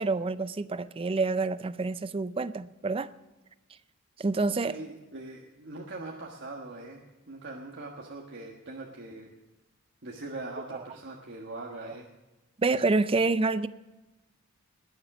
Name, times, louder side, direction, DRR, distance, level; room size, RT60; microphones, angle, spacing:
voice 1, 0.0-3.1 4.2-4.8 11.8-11.9 12.6-13.7, right 3 dB, 25° right, 15 dB, 0.4 m, -27 dB
voice 2, 4.6-9.3 10.0-12.1, right 2 dB, 55° right, -1 dB, 1.5 m, -41 dB
20.5 x 7.4 x 6.0 m, 1.1 s
head